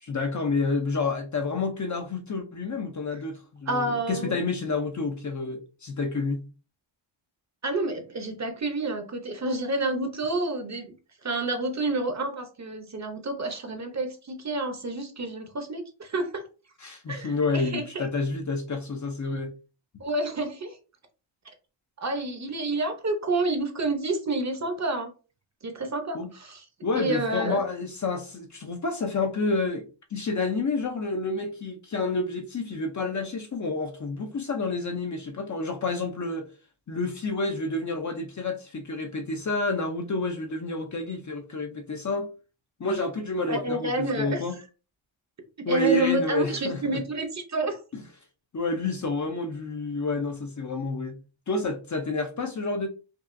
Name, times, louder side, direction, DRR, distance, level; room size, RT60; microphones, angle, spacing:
voice 1, 0.0-6.4 16.8-19.5 26.1-26.3 26.8-36.5 36.9-42.3 42.8-44.6 45.6-47.0 47.9-48.0 48.5-51.2 51.5-52.9, left 3 dB, 35° left, 0.6 m, -29 dB
voice 2, 3.7-4.4 7.6-10.9 11.2-16.5 17.1-18.1 20.0-20.8 22.0-25.1 25.6-26.6 26.9-27.6 43.5-44.4 45.6-47.8, right 2 dB, 35° right, 0.7 m, -29 dB
5.3 x 2.4 x 2.5 m
wide cardioid pair, 135°, 50 cm